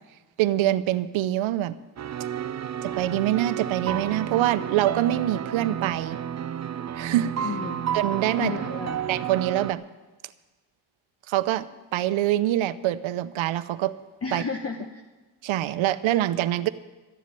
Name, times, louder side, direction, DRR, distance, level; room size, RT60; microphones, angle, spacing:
voice 1, 0.4-1.8 2.8-6.2 6.8-7.3 7.9-8.8 9.1-9.8 11.3-11.7 11.9-13.9 14.3-14.4 15.4-16.7, right 13 dB, 80° right, 15 dB, 0.8 m, -25 dB
sound 1, 2.0-9.7, right 9 dB, 35° right, 0.6 m, -31 dB
voice 2, 7.4-8.0 8.4-9.0 14.2-15.0 16.6-16.7, left 5 dB, 30° left, 3 dB, 1.2 m, -33 dB
13.5 x 7.4 x 9.9 m, 1.2 s
cardioid pair, 85°, 47 cm